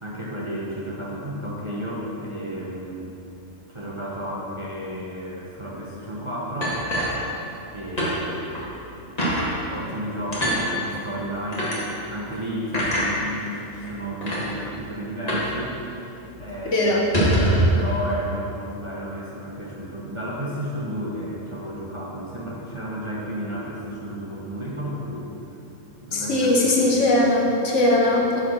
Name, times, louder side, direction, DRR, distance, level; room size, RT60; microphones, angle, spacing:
voice 1, 0.0-3.1 3.7-6.8 7.7-8.7 9.7-11.8 12.1-15.8 16.1-16.9 17.7-25.3 26.0-27.0 27.4-27.6 28.1-28.3, equal, 25° right, -6 dB, 1.0 m, -32 dB
sound 1, 6.6-7.7 8.0-8.1 8.5-8.7 9.2-9.5 10.3-10.6 11.5-11.8 12.7-13.1 13.8-13.9 14.2-14.4 15.3-15.5 15.8-15.9 16.2-16.4 17.0-17.7, equal, 30° left, 1.8 m, -23 dB
voice 2, 16.7-17.0 26.1-28.4, left 1 dB, 60° left, -2 dB, 1.3 m, -20 dB
7.1 x 5.2 x 6.0 m, 2.9 s
omnidirectional pair, 1.5 m